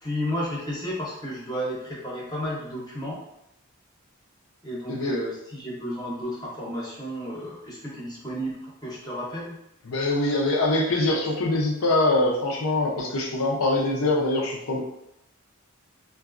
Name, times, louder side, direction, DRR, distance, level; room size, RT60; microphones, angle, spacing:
voice 1, 0.0-3.2 4.6-9.6, equal, 20° left, -6 dB, 0.8 m, -32 dB
voice 2, 9.9-14.8, left 2 dB, 70° left, -1 dB, 0.7 m, -23 dB
3.8 x 2.3 x 2.5 m, 0.82 s
head